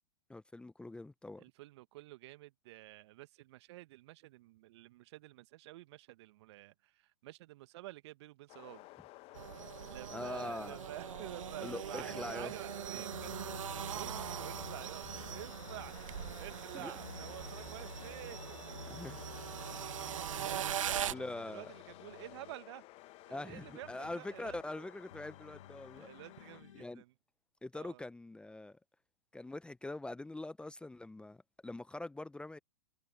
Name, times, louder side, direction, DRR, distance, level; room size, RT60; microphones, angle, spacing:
voice 1, 0.3-1.4 10.1-10.8 11.6-12.5 16.7-17.0 18.9-19.2 20.0-20.3 21.1-21.7 23.3-26.1 26.7-27.0 27.6-28.8 29.3-32.6, left 2 dB, 5° left, 0.9 m, -43 dB
voice 2, 1.4-8.9 9.3-19.0 19.5-22.8 23.3-24.9 25.9-27.1 27.7-28.0, right 17 dB, 50° right, 1.4 m, -51 dB
sound 1, 8.5-26.6, left 20 dB, 35° left, 1.1 m, -54 dB
sound 2, 9.3-21.1, right 10 dB, 70° right, 0.6 m, -41 dB
sound 3, 13.1-16.5 17.0-22.5 23.0-26.8, left 11 dB, 65° left, 1.6 m, -54 dB
figure-of-eight pair, 105°, 17 cm